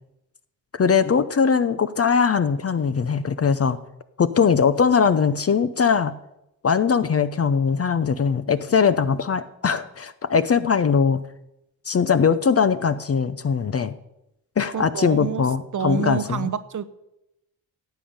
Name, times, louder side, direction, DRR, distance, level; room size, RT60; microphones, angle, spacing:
voice 1, 0.7-3.8 4.2-6.1 6.6-11.2 11.9-13.9 14.6-16.5, left 6 dB, 30° left, 12 dB, 0.7 m, -21 dB
voice 2, 14.7-15.4 15.7-16.8, right 7 dB, 35° right, 13 dB, 0.9 m, -27 dB
14.0 x 8.6 x 5.3 m, 0.88 s
hypercardioid pair, 50°, 50 cm